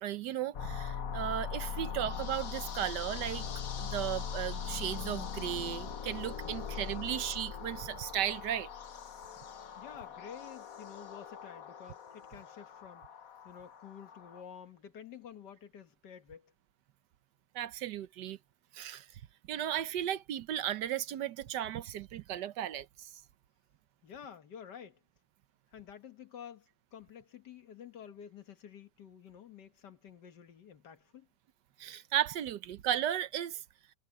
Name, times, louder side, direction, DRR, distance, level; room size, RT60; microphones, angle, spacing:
voice 1, 0.0-3.5 3.8-8.7 17.5-18.4 18.7-19.2 19.5-23.2 31.8-33.6, right 11 dB, 75° right, 1.4 m, -35 dB
sound 1, 0.5-14.4, left 7 dB, 55° left, 1.5 m, -41 dB
voice 2, 6.4-6.8 9.8-13.1 13.4-16.5 24.0-25.0 25.7-31.3, left 8 dB, 70° left, 2.0 m, -50 dB
omnidirectional pair, 1.9 m